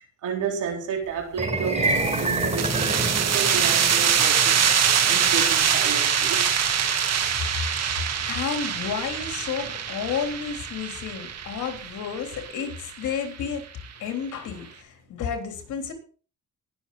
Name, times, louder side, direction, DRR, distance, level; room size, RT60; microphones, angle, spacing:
voice 1, 0.0-4.7 5.0-6.5, right 6 dB, 80° right, 3.8 m, -31 dB
sound 1, 1.3-11.6, right 2 dB, 20° right, 3.9 m, -31 dB
sound 2, 1.8-13.2, right 8 dB, 60° right, 1.8 m, -24 dB
voice 2, 8.2-13.7 14.0-15.9, left 7 dB, 80° left, 3.4 m, -31 dB
19.5 x 7.2 x 4.0 m
cardioid pair, 90°, 30 cm